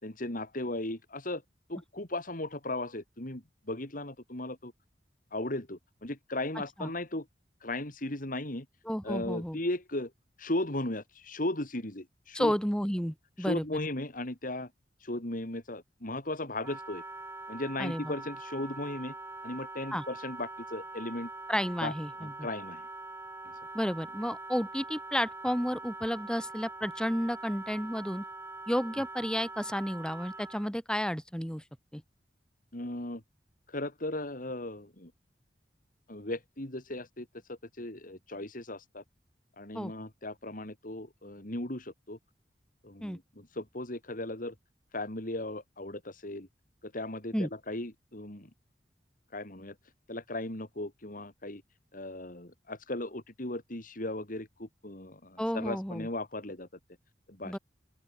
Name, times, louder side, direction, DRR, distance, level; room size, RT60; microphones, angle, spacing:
voice 1, 0.0-1.4 1.7-4.7 5.3-7.3 7.6-8.7 9.0-10.1 10.4-12.5 13.4-14.7 15.0-17.0 17.5-19.1 19.4-21.3 21.8-22.9 32.7-33.2 33.7-35.1 36.1-39.0 39.6-42.2 42.8-44.5 44.9-46.5 46.8-48.5 49.3-49.8 50.1-51.6 51.9-56.7 57.3-57.6, left 1 dB, 50° left, 3.6 m, -37 dB
voice 2, 8.9-9.6 12.3-13.6 17.8-18.1 19.9-20.0 21.5-22.3 23.7-28.2 28.7-31.6 31.9-32.0 39.7-39.9 43.0-43.2 47.3-47.5 55.4-56.1 57.4-57.6, equal, 5° left, 8.0 m, -32 dB
Wind instrument woodwind instrument, 16.6-30.7, right 2 dB, 15° right, 6.8 m, -43 dB
open air
head